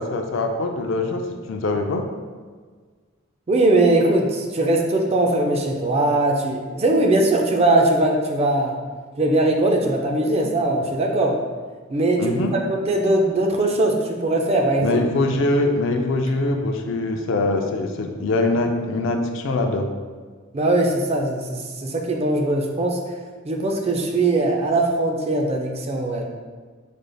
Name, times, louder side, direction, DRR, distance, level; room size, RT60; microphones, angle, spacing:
voice 1, 0.0-2.1 12.2-12.5 14.8-19.9, left 2 dB, 70° left, 4 dB, 0.4 m, -23 dB
voice 2, 3.5-8.8 9.2-11.4 11.9-12.4 12.7-15.0 20.5-23.0 23.4-26.3, right 2 dB, 30° right, 2 dB, 0.4 m, -20 dB
5.1 x 3.2 x 2.2 m, 1.5 s
head